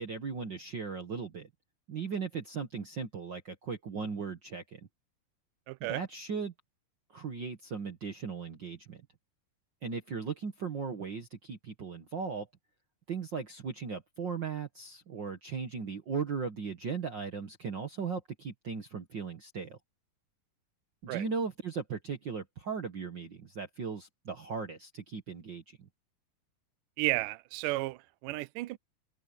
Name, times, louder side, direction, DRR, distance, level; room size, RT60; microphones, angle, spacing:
voice 1, 0.0-1.5 1.9-4.8 5.9-6.5 7.1-9.0 9.8-12.5 13.1-19.8 21.0-25.9, right 5 dB, 65° right, 1.1 m, -37 dB
voice 2, 5.7-6.0 21.1-21.2 27.0-28.8, right 19 dB, 80° right, 1.9 m, -33 dB
open air
omnidirectional pair, 4.3 m